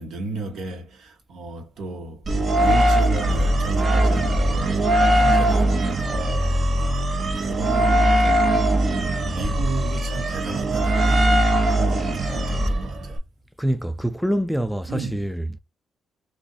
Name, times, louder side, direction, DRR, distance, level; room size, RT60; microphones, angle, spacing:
voice 1, 0.0-8.6 9.3-13.2 14.9-15.3, right 3 dB, 70° right, 1.3 m, -34 dB
sound 1, 2.3-13.2, right 1 dB, 40° right, 0.8 m, -20 dB
voice 2, 13.6-15.6, equal, ahead, 0.4 m, -25 dB
2.6 x 2.5 x 4.0 m
cardioid pair, 90°, 0 cm